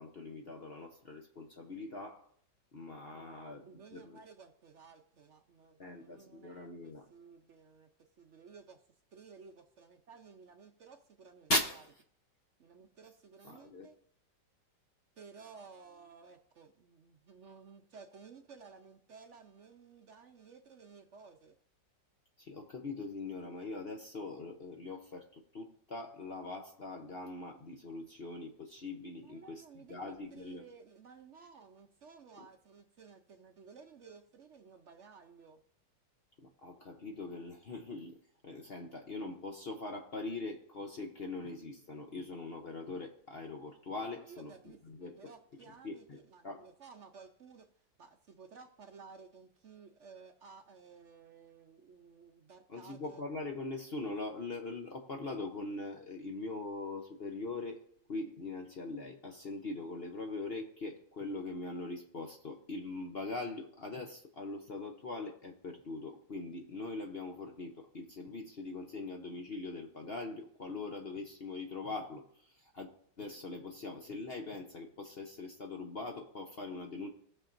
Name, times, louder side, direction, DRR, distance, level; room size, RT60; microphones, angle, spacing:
voice 1, 0.0-2.3 2.7-4.2 5.8-7.1 11.5-11.9 13.4-13.9 22.4-29.6 29.9-30.6 32.4-32.5 36.4-44.5 44.8-45.2 45.8-46.2 46.4-46.6 52.7-72.9 73.2-77.1, left 2 dB, 50° left, 3 dB, 0.7 m, -41 dB
voice 2, 3.1-7.9 8.2-8.8 9.1-11.5 12.6-14.0 15.2-21.6 29.2-35.6 44.1-47.7 48.0-53.2, right 5 dB, 65° right, 5 dB, 0.7 m, -55 dB
18.5 x 6.6 x 2.6 m, 0.63 s
omnidirectional pair, 1.9 m